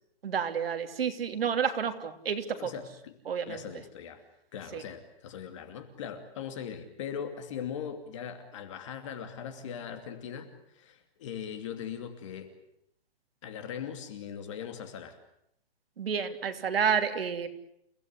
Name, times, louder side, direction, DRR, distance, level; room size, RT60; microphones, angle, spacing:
voice 1, 0.2-2.7 3.3-3.7 4.7-4.8 16.0-17.5, right 7 dB, 65° right, 6 dB, 3.2 m, -30 dB
voice 2, 2.5-3.1 3.5-4.2 4.5-12.5 13.4-15.2, left 8 dB, 30° left, 8 dB, 2.7 m, -40 dB
29.5 x 17.0 x 9.8 m, 0.75 s
hypercardioid pair, 175°, 31 cm